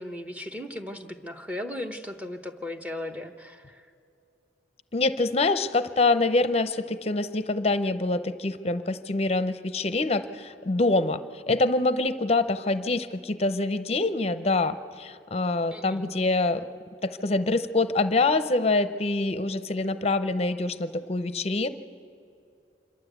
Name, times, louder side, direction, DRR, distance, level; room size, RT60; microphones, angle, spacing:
voice 1, 0.0-3.8 15.7-16.1, left 1 dB, 5° right, 7 dB, 0.9 m, -37 dB
voice 2, 4.9-16.7 17.0-21.7, left 2 dB, 35° left, 12 dB, 0.6 m, -25 dB
26.5 x 12.0 x 8.1 m, 2.5 s
head